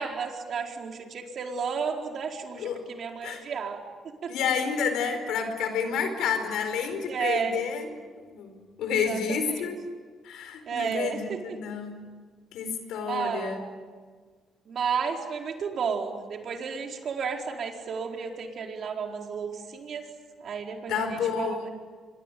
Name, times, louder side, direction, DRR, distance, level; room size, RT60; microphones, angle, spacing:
voice 1, 0.0-3.8 4.2-4.3 7.1-7.6 9.0-9.6 10.7-11.4 11.7-11.8 13.1-13.6 14.7-20.0 20.4-21.6, right 6 dB, 60° right, 2 dB, 4.5 m, -32 dB
voice 2, 4.3-9.8 10.2-12.1 12.5-13.6 20.9-21.7, left 6 dB, 85° left, 8 dB, 4.7 m, -30 dB
26.0 x 23.0 x 9.4 m, 1.5 s
cardioid pair, 90°, 0 cm